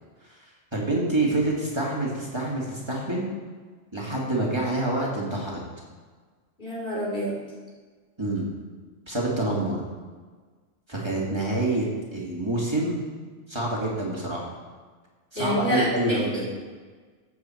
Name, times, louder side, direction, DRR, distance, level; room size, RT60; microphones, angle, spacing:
voice 1, 0.7-3.2 3.9-5.6 8.2-8.5 9.1-9.8 10.9-11.8 12.1-13.0 13.5-14.5 15.3-16.4, right 2 dB, 20° right, -4 dB, 2.7 m, -27 dB
voice 2, 6.6-7.3 15.4-16.4, equal, 45° left, -4 dB, 3.8 m, -27 dB
14.0 x 8.2 x 4.6 m, 1.4 s
omnidirectional pair, 1.3 m